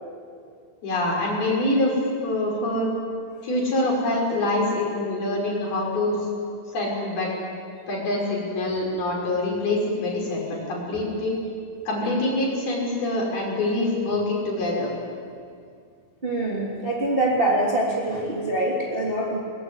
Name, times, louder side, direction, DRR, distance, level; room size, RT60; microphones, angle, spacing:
voice 1, 0.8-2.0 2.2-2.9 3.4-6.3 6.7-7.3 7.9-11.4 11.9-14.9, left 2 dB, 50° left, -3 dB, 7.7 m, -25 dB
voice 2, 16.2-19.4, right 1 dB, 15° right, -3 dB, 2.3 m, -24 dB
23.0 x 22.0 x 9.9 m, 2.2 s
omnidirectional pair, 5.8 m